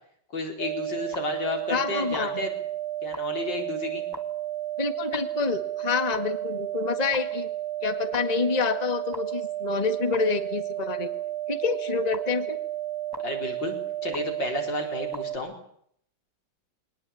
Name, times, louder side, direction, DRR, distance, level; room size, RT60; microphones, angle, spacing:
voice 1, 0.3-2.5 3.0-4.0 13.2-13.8 14.0-15.5, left 2 dB, 75° left, 2 dB, 5.1 m, -32 dB
sound 1, 0.6-15.4, right 13 dB, 15° right, 1.6 m, -32 dB
voice 2, 1.7-2.3 4.8-7.5 7.8-11.1 11.5-12.6, left 4 dB, 20° left, 8 dB, 1.8 m, -27 dB
22.0 x 19.5 x 8.5 m, 0.67 s
omnidirectional pair, 2.0 m